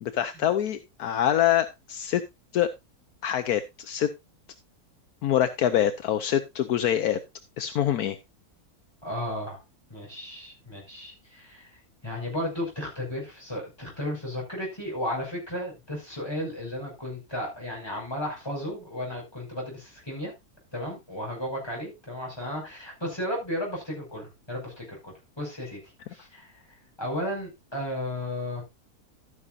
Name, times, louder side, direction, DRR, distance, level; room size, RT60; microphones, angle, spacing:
voice 1, 0.0-2.2 2.5-2.7 3.2-4.1 5.2-7.2 7.6-8.2, left 11 dB, 75° left, 10 dB, 1.2 m, -25 dB
voice 2, 9.0-9.6 9.9-11.7 12.0-20.3 20.7-25.8 26.1-26.5 27.0-28.6, left 1 dB, 15° left, -2 dB, 5.9 m, -34 dB
12.5 x 9.9 x 2.5 m, 0.22 s
omnidirectional pair, 1.6 m